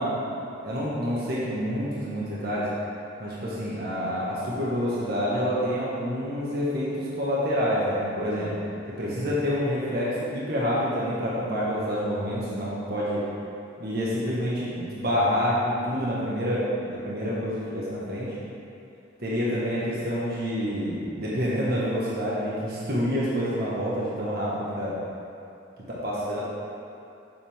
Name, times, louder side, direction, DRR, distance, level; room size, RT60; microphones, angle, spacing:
voice 1, 0.0-2.7 3.2-8.6 9.0-13.2 13.8-18.4 19.2-24.9 25.9-26.4, equal, 55° right, -7 dB, 1.4 m, -27 dB
8.4 x 7.3 x 3.6 m, 2.6 s
head